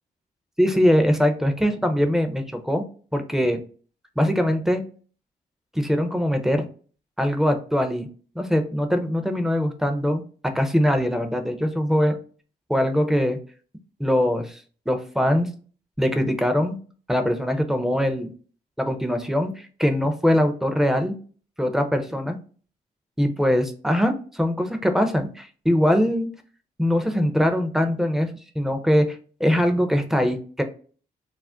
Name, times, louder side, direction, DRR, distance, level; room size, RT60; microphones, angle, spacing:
voice 1, 0.6-2.8 3.1-3.6 4.2-4.8 5.7-6.7 7.2-8.1 8.4-10.2 10.5-12.2 12.7-13.4 14.0-14.6 14.9-15.5 16.0-16.8 17.1-18.3 18.8-21.2 21.6-22.4 23.2-26.3 26.8-28.3 28.6-30.6, equal, ahead, 6 dB, 0.5 m, -22 dB
2.4 x 2.1 x 3.4 m, 0.41 s
cardioid pair, 60°, 17 cm